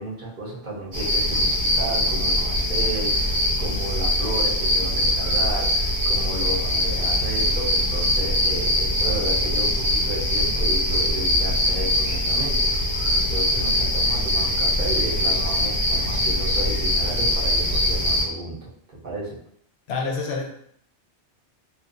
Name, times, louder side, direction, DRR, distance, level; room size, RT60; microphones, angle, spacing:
voice 1, 0.0-19.4, right 1 dB, 45° right, -5 dB, 0.9 m, -33 dB
sound 1, 0.9-18.2, left 1 dB, 65° right, 1.1 m, -22 dB
voice 2, 19.9-20.5, left 4 dB, 70° left, 0 dB, 0.8 m, -27 dB
2.6 x 2.3 x 2.5 m, 0.68 s
omnidirectional pair, 1.1 m